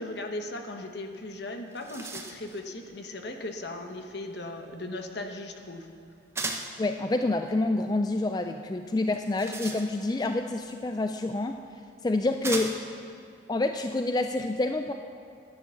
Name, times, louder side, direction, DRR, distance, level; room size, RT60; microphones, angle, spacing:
voice 1, 0.0-5.9, left 2 dB, 60° left, 4 dB, 1.1 m, -37 dB
sound 1, 1.2-1.3 1.6-2.6 6.3-6.8 9.0-10.2 11.3-11.4 12.4-13.0, right 3 dB, 15° right, 0.8 m, -36 dB
voice 2, 6.8-11.6 12.0-12.8 13.5-14.9, left 2 dB, 20° left, 6 dB, 0.3 m, -28 dB
11.0 x 10.0 x 7.1 m, 2.3 s
head